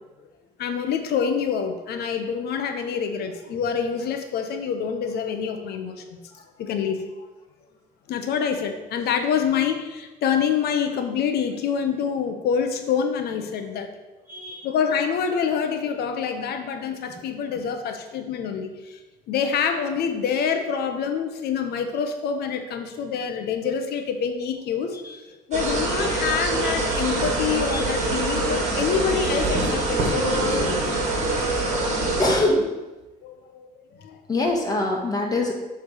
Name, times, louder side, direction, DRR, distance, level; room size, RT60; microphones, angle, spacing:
voice 1, 0.6-6.2 6.6-7.0 8.1-13.9 14.6-19.0 19.3-25.2 25.5-30.8 33.2-34.2, left 7 dB, 70° left, 6 dB, 1.0 m, -26 dB
voice 2, 14.3-14.7 27.7-27.8 32.2-32.7 34.3-35.5, left 2 dB, 20° left, 0 dB, 1.8 m, -23 dB
sound 1, 25.5-32.4, right 2 dB, 45° right, 2.1 m, -24 dB
7.4 x 3.6 x 6.5 m, 1.1 s
cardioid pair, 110°, 17 cm